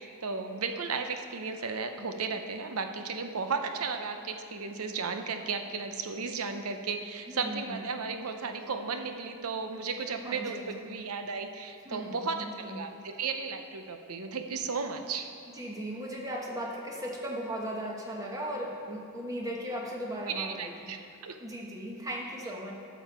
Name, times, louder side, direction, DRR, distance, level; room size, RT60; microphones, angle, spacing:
voice 1, 0.0-15.3 20.3-21.0 21.2-21.4, right 5 dB, 75° right, 6 dB, 0.7 m, -34 dB
voice 2, 7.3-7.9 10.1-10.9 11.8-12.8 15.6-20.9 21.4-22.7, equal, 15° right, -2 dB, 1.3 m, -37 dB
12.0 x 7.1 x 4.3 m, 2.6 s
head